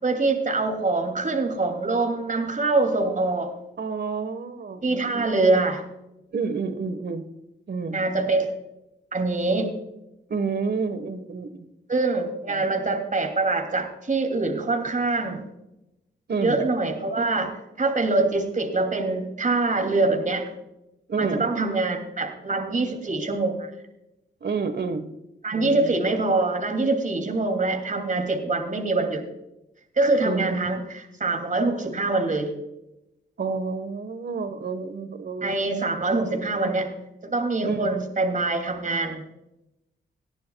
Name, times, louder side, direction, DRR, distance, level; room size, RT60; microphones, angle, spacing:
voice 1, 0.0-3.5 4.8-5.8 7.9-8.5 9.1-9.7 11.9-15.5 16.4-17.5 17.8-20.5 21.2-23.7 25.4-29.3 30.0-32.5 35.4-36.9 37.2-39.2, right 3 dB, 40° right, 4 dB, 2.7 m, -24 dB
voice 2, 3.8-5.3 6.3-7.2 7.7-8.0 10.3-11.7 12.5-12.6 16.3-16.6 21.1-21.4 24.4-25.1 25.5-26.0 30.2-30.8 33.4-35.5 36.2-36.3 37.6-37.9, right 4 dB, 55° right, 11 dB, 1.3 m, -29 dB
19.0 x 11.5 x 2.3 m, 0.89 s
supercardioid pair, 45°, 20 cm